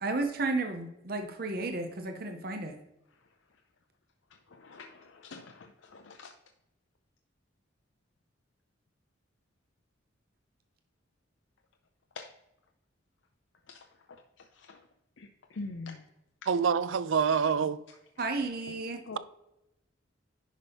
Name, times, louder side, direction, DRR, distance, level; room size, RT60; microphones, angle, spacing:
voice 1, 0.0-2.8 18.2-19.0, right 3 dB, 50° right, 0.8 m, -33 dB
voice 2, 4.3-6.3 12.1-12.3 13.7-14.9 15.2-16.1 17.9-18.2 18.7-18.8 19.1-19.2, left 3 dB, 80° left, 0.6 m, -46 dB
voice 3, 16.5-17.8, right 6 dB, 85° right, 0.5 m, -26 dB
10.0 x 5.4 x 3.5 m
head